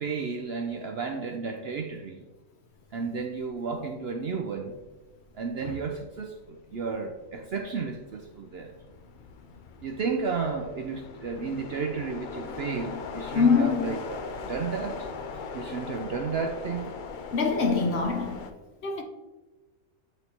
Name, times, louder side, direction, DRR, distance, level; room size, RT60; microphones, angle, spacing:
voice 1, 0.0-2.2 2.9-4.8 5.3-8.7 9.8-15.1 15.3-16.9, right 5 dB, 65° right, 0.6 m, -33 dB
sound 1, 3.5-3.7 4.1-18.5, left 4 dB, 80° left, 0.4 m, -40 dB
voice 2, 13.3-14.0 17.3-18.5 18.8-19.0, left 5 dB, 60° left, 0.8 m, -24 dB
8.2 x 4.1 x 2.8 m
omnidirectional pair, 1.5 m